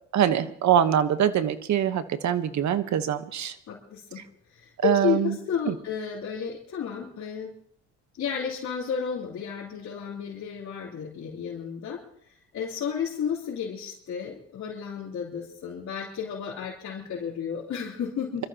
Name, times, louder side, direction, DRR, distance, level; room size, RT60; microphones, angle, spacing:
voice 1, 0.1-3.5 4.8-5.3 5.7-5.8, right 9 dB, 70° right, 11 dB, 1.2 m, -23 dB
voice 2, 3.7-4.2 4.5-7.5 8.2-12.0 12.5-18.4, left 7 dB, 65° left, -6 dB, 3.7 m, -32 dB
27.0 x 13.5 x 3.0 m, 0.65 s
cardioid pair, 90°, 30 cm